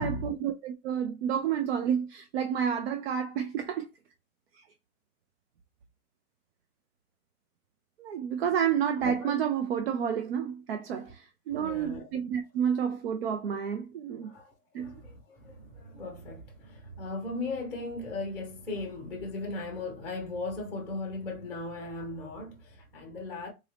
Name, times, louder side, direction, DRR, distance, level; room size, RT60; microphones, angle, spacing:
voice 1, 0.0-3.9 8.0-14.3 14.7-15.0, right 8 dB, 45° right, 0.5 m, -30 dB
voice 2, 9.0-9.3 11.5-12.1 14.2-23.5, left 2 dB, 5° left, 0.7 m, -37 dB
3.9 x 2.7 x 3.2 m
hypercardioid pair, 150°, 44 cm